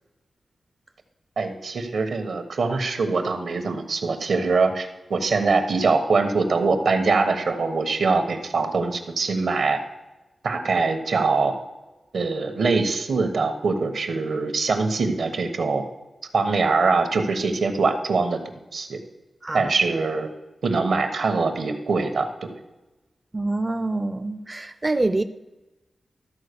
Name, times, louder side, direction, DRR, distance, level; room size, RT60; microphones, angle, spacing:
voice 1, 1.4-9.8 10.4-11.5 12.1-15.8 16.3-18.4 18.7-19.0 19.5-20.3 20.6-22.5, right 4 dB, 80° right, 1.1 m, -23 dB
voice 2, 23.3-25.2, right 2 dB, 25° right, 0.4 m, -25 dB
13.0 x 4.4 x 6.8 m
wide cardioid pair, 90°, 0 cm